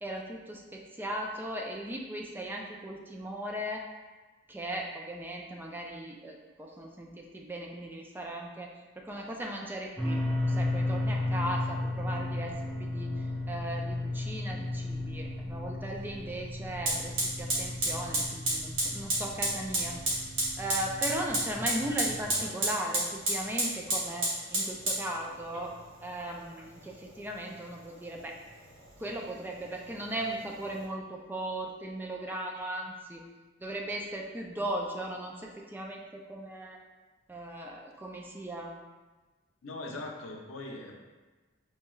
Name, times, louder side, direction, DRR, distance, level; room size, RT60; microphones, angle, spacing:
voice 1, 0.0-3.8 4.5-20.0 20.6-25.7 26.0-28.4 29.0-33.2 33.6-36.8 37.3-38.7, right 1 dB, 10° right, 0 dB, 0.3 m, -37 dB
sound 1, 10.0-22.3, left 2 dB, 5° left, 0.8 m, -34 dB
Fire, 15.8-15.9 16.9-30.9, right 1 dB, 80° right, 1.5 m, -33 dB
voice 2, 39.6-40.9, left 2 dB, 90° left, 1 dB, 0.6 m, -40 dB
4.4 x 2.3 x 3.0 m, 1.3 s
head